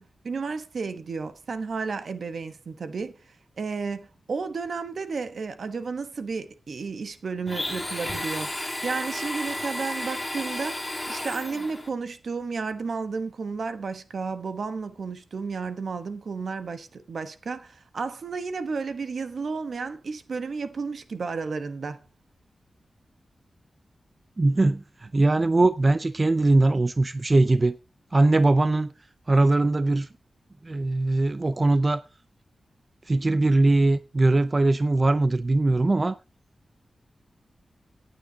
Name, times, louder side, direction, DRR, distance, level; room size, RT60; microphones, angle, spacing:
voice 1, 0.0-3.2 3.6-22.0, right 4 dB, 65° right, 1.1 m, -32 dB
Domestic sounds home sounds, 7.5-11.9, left 1 dB, 10° left, 1.7 m, -32 dB
voice 2, 24.4-27.8 28.1-28.9 29.3-30.1 30.6-32.0 33.1-36.2, right 2 dB, 30° right, 0.5 m, -21 dB
18.0 x 9.1 x 2.8 m
wide cardioid pair, 110°, 0 cm